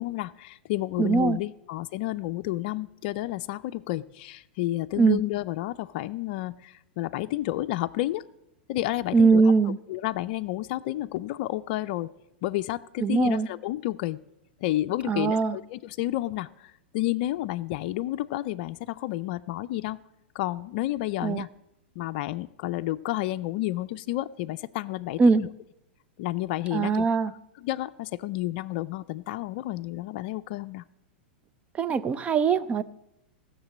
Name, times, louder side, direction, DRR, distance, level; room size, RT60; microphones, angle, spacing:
voice 1, 0.0-8.2 8.7-9.4 9.9-12.1 12.4-14.2 14.6-20.0 20.3-21.5 22.0-25.5 26.2-27.1 27.6-30.8, left 16 dB, 55° left, 0.4 m, -31 dB
voice 2, 1.0-1.4 5.0-5.2 9.1-9.8 13.0-13.5 15.1-15.6 21.2-21.4 25.2-25.4 26.7-27.3 31.8-32.8, right 4 dB, 20° right, 0.6 m, -21 dB
15.5 x 6.7 x 7.4 m
hypercardioid pair, 120°, 6 cm